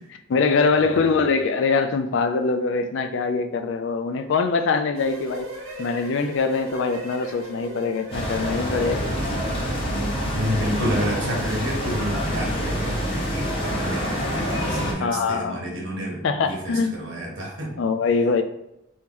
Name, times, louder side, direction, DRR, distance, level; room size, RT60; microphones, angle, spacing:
voice 1, 0.3-5.5 5.8-9.1 15.0-15.6 16.2-17.0 17.8-18.4, left 4 dB, 65° left, 8 dB, 0.3 m, -23 dB
sound 1, 4.9-12.0, left 1 dB, 90° right, 0.7 m, -39 dB
sound 2, 8.1-14.9, equal, 25° left, 0.7 m, -26 dB
sound 3, 9.0-14.6, right 2 dB, 45° right, 0.4 m, -41 dB
voice 2, 10.3-14.1 14.7-17.7, equal, 75° right, -2 dB, 1.2 m, -29 dB
2.9 x 2.7 x 3.6 m, 0.83 s
head